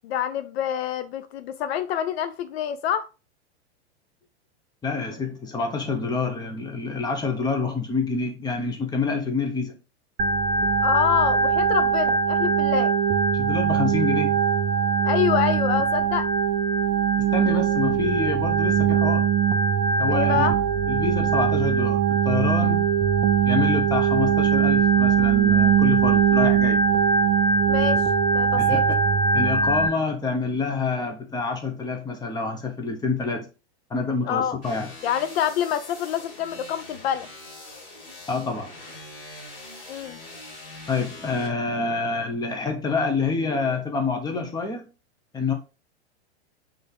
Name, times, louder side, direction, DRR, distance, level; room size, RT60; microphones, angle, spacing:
voice 1, 0.0-3.1 10.8-12.9 15.0-16.3 20.1-20.5 27.7-28.0 28.3-28.8 34.2-34.6 35.0-37.3 39.9-40.2, left 10 dB, 60° left, 0.5 m, -26 dB
voice 2, 4.8-9.8 13.3-14.4 17.3-19.3 20.0-20.5 20.9-22.8 23.4-26.8 28.6-29.0 29.3-33.5 33.9-34.9 38.3-38.7 40.9-44.9 45.3-45.5, left 4 dB, 10° left, 0.9 m, -27 dB
Organ, 10.2-29.9, right 6 dB, 25° right, 0.5 m, -21 dB
sound 1, 34.6-41.5, left 2 dB, 35° left, 2.6 m, -43 dB
4.0 x 3.5 x 3.7 m
hypercardioid pair, 120°, 35 cm